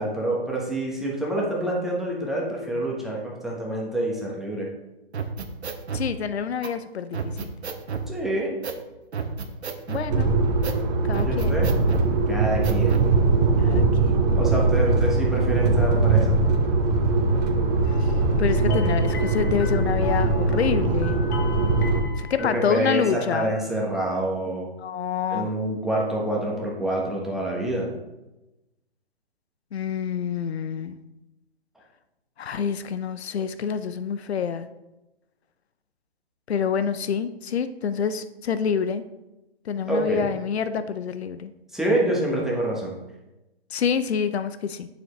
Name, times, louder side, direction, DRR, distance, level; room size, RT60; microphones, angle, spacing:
voice 1, 0.0-4.7 8.1-8.6 11.2-11.7 12.3-13.1 14.4-16.4 22.4-24.7 25.3-27.9 39.9-40.3 41.7-42.9, right 1 dB, ahead, -4 dB, 1.2 m, -27 dB
sound 1, 5.1-6.1 6.6-6.7 7.1-8.1 8.6-8.8 9.1-10.1 10.6-10.8 11.1-12.1 12.6-13.1, right 5 dB, 85° right, 1.1 m, -31 dB
voice 2, 5.9-7.5 9.9-10.3 11.1-11.6 13.6-14.2 18.4-21.2 22.2-23.5 24.8-25.5 29.7-31.0 32.4-34.7 36.5-39.0 39.7-41.5 43.7-44.9, left 7 dB, 75° left, 12 dB, 0.7 m, -27 dB
sound 2, 10.1-22.0, right 3 dB, 40° right, 1.2 m, -21 dB
sound 3, 17.8-23.9, left 6 dB, 20° left, 0.4 m, -37 dB
9.3 x 7.0 x 3.2 m, 1.0 s
hypercardioid pair, 145°, 32 cm